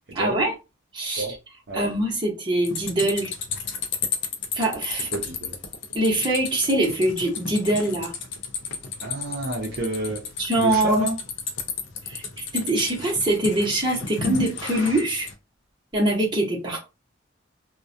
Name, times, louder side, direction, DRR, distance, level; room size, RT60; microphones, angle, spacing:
voice 1, 0.1-0.5 0.9-1.3 1.7-3.3 4.5-5.1 5.9-8.1 10.4-11.0 12.1-15.3 15.9-16.8, right 1 dB, 25° right, 0.8 m, -23 dB
sound 1, 2.6-15.3, left 5 dB, 60° left, 0.5 m, -33 dB
voice 2, 5.1-5.5 9.0-10.2 10.6-11.2, right 1 dB, 55° right, 0.6 m, -28 dB
2.2 x 2.1 x 2.6 m
head